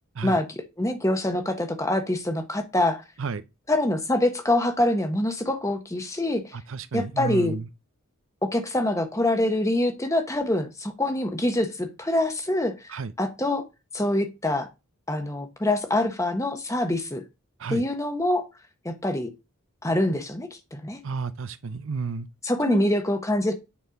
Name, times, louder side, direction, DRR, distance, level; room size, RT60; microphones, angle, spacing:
voice 1, 0.8-3.0 3.7-6.5 6.9-7.6 8.5-13.6 13.9-14.7 15.1-17.2 17.7-18.5 18.8-19.3 19.8-21.0 22.4-23.5, left 1 dB, 15° left, 1.1 m, -25 dB
voice 2, 6.5-7.7 12.9-13.1 17.6-17.8 21.0-22.3 22.7-22.9, right 4 dB, 65° right, 0.6 m, -31 dB
9.4 x 4.3 x 5.1 m
head